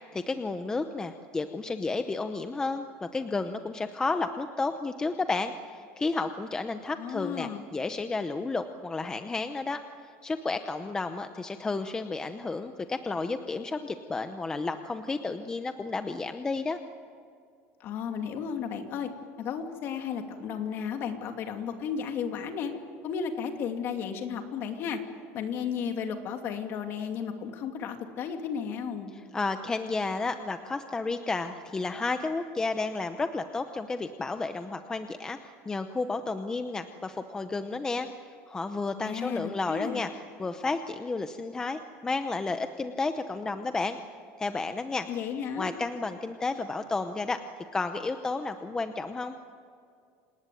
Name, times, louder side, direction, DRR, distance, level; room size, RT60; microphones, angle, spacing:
voice 1, 0.1-9.8 10.2-16.8 29.1-38.1 38.5-40.1 40.4-44.0 44.4-45.1 45.6-47.4 47.7-49.4, left 3 dB, 10° left, 8 dB, 0.8 m, -32 dB
voice 2, 7.0-7.6 17.8-19.1 19.4-22.7 23.0-25.0 25.3-29.1 39.0-40.0 45.1-45.7, left 7 dB, 40° left, 5 dB, 2.5 m, -33 dB
27.5 x 19.0 x 9.3 m, 2.3 s
cardioid pair, 165°, 6 cm